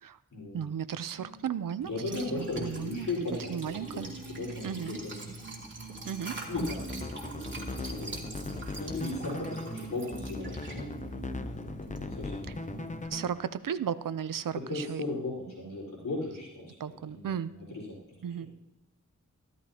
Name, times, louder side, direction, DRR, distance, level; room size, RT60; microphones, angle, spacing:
voice 1, 0.5-1.9 2.4-3.1 3.5-4.1 4.6-5.0 6.0-6.4 13.1-15.0 16.8-17.5 18.2-18.5, right 8 dB, 80° right, 14 dB, 0.6 m, -34 dB
sound 1, 1.2-13.2, right 4 dB, 60° right, 1.7 m, -49 dB
voice 2, 1.8-5.3 6.5-7.1 7.4-8.2 8.7-10.9 11.2-12.9 14.7-16.7 17.1-18.0, left 2 dB, 80° left, -5 dB, 4.6 m, -37 dB
Liquid, 1.8-13.1, right 2 dB, 35° right, 2.7 m, -44 dB
sound 2, 6.5-13.6, left 2 dB, 25° left, 0.6 m, -39 dB
14.5 x 13.5 x 2.9 m, 0.97 s
wide cardioid pair, 120°, 32 cm